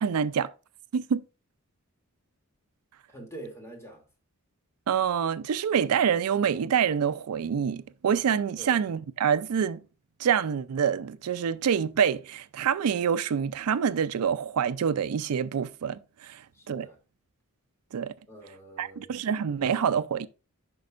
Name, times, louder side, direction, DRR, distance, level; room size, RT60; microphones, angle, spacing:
voice 1, 0.0-0.5 0.9-1.2 4.9-9.8 10.2-16.4 16.7-16.9 17.9-18.1 18.8-20.3, right 7 dB, 75° right, 0.4 m, -26 dB
voice 2, 3.1-4.0 8.6-8.8 16.5-17.0 18.3-19.2, right 2 dB, 10° left, 2.5 m, -45 dB
10.5 x 5.2 x 2.4 m
head